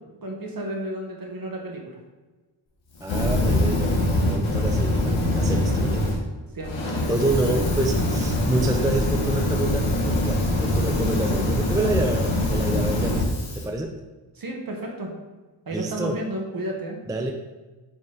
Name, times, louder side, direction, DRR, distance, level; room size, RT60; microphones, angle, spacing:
voice 1, 0.2-2.0 6.5-7.1 14.3-15.1 15.7-17.0, right 1 dB, 50° right, 1 dB, 1.2 m, -32 dB
Fire, 3.0-6.2 6.6-13.6, left 1 dB, 85° left, 1.3 m, -23 dB
voice 2, 3.0-6.1 7.1-13.9 15.7-16.2 17.1-17.3, right 2 dB, 10° right, 3 dB, 0.3 m, -28 dB
6.1 x 4.5 x 3.8 m, 1.2 s
wide cardioid pair, 155°, 46 cm